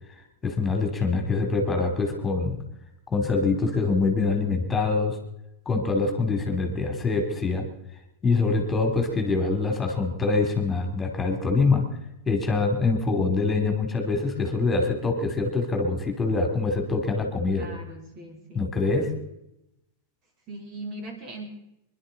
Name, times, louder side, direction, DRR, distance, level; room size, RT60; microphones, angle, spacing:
voice 1, 0.4-2.6 3.1-5.2 5.6-7.7 8.2-11.9 12.3-17.7 18.5-19.1, left 3 dB, 15° left, 3 dB, 2.9 m, -24 dB
voice 2, 17.5-18.8 20.5-21.5, right 1 dB, 35° right, 2 dB, 3.5 m, -39 dB
26.0 x 11.5 x 4.1 m, 0.84 s
figure-of-eight pair, 90°, 0 cm